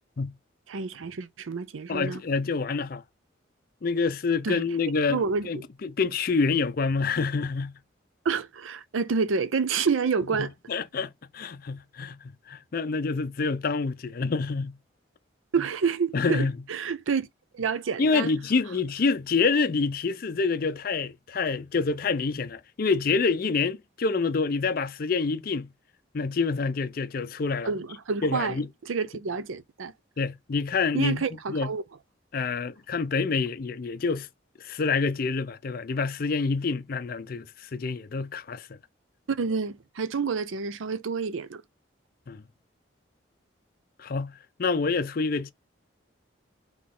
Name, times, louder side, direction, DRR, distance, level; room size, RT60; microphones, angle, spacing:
voice 1, 0.7-2.2 4.4-4.6 5.1-5.6 8.2-10.5 15.5-17.3 17.5-18.3 27.6-29.9 30.9-31.8 39.3-41.6, right 5 dB, 85° right, 0.5 m, -28 dB
voice 2, 1.9-3.0 3.8-7.7 10.4-12.2 12.5-14.7 16.1-16.5 18.0-25.7 26.1-27.7 28.2-28.7 30.2-31.7 32.3-34.3 34.6-38.7 42.3-42.4 44.0-44.3 44.6-45.5, left 4 dB, 50° left, 0.5 m, -27 dB
3.9 x 3.1 x 3.7 m
head